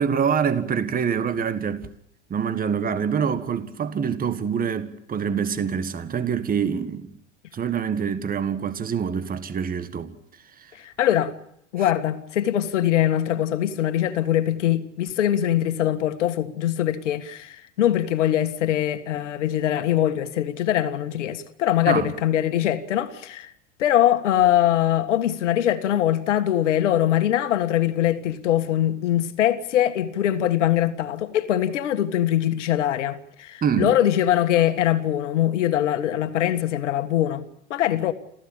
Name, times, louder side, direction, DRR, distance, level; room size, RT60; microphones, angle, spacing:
voice 1, 0.0-1.9 2.3-7.1 7.5-10.2 10.6-10.7 21.9-22.1 33.6-34.0, right 7 dB, 25° right, 1.7 m, -25 dB
voice 2, 10.7-11.3 11.7-23.5 23.8-37.5 37.7-38.1, left 11 dB, 70° left, 1.8 m, -22 dB
28.0 x 15.0 x 8.8 m
hypercardioid pair, 90°, 37 cm